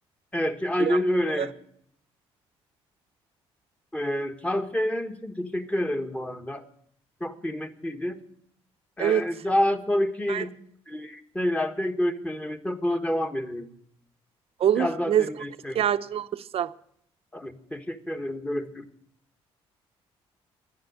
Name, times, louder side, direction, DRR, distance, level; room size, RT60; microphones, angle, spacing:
voice 1, 0.3-1.5 3.9-6.6 7.2-8.2 9.0-10.6 10.9-13.7 14.8-15.9 17.3-18.8, left 1 dB, 10° left, 1.5 m, -28 dB
voice 2, 14.6-15.3 15.7-16.7, right 10 dB, 55° right, 0.7 m, -24 dB
11.5 x 10.0 x 8.0 m
supercardioid pair, 70°, 11 cm